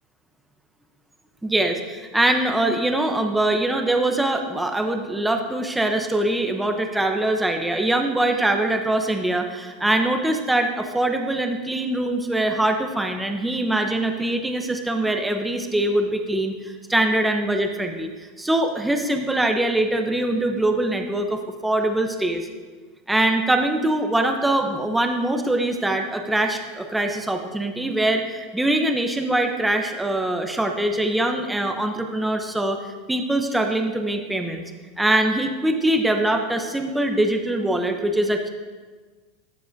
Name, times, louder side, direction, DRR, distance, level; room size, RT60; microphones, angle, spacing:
voice 1, 1.4-18.1 18.4-22.5 23.1-34.6 35.0-38.5, right 1 dB, 5° right, 4 dB, 0.8 m, -23 dB
12.5 x 7.0 x 2.7 m, 1.4 s
supercardioid pair, 110°, 0 cm